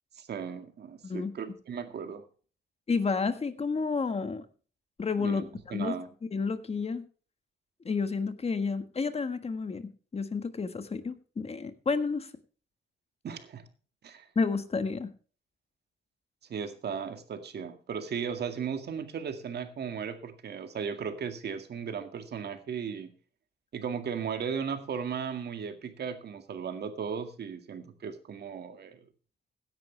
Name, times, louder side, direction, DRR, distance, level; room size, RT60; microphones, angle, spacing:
voice 1, 0.1-2.2 5.2-5.4 5.7-6.1 13.2-13.7 14.0-14.3 16.5-23.1 23.7-29.0, right 7 dB, 60° right, 7 dB, 2.1 m, -36 dB
voice 2, 2.9-4.5 5.0-5.9 6.3-7.0 7.8-12.3 14.3-15.1, left 4 dB, 35° left, 10 dB, 1.5 m, -30 dB
16.5 x 10.0 x 3.3 m, 0.39 s
cardioid pair, 95°, 19 cm